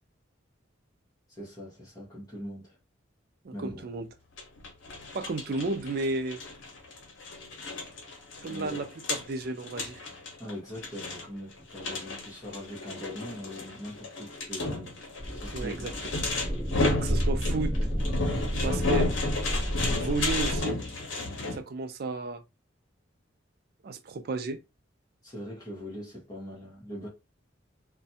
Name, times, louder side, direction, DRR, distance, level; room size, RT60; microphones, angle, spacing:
voice 1, 1.3-2.8 3.5-3.8 8.5-8.8 10.4-14.9 15.3-16.4 25.2-27.1, left 1 dB, 20° left, 1.0 m, -41 dB
voice 2, 3.4-4.1 5.1-6.4 8.4-10.0 15.5-15.9 17.0-17.7 18.5-19.1 20.0-20.8 21.5-22.4 23.8-24.6, right 3 dB, 50° right, 0.4 m, -33 dB
sound 1, 4.4-21.6, left 2 dB, 75° left, 0.7 m, -33 dB
sound 2, 15.2-20.6, equal, 10° right, 0.6 m, -30 dB
2.5 x 2.1 x 2.7 m
head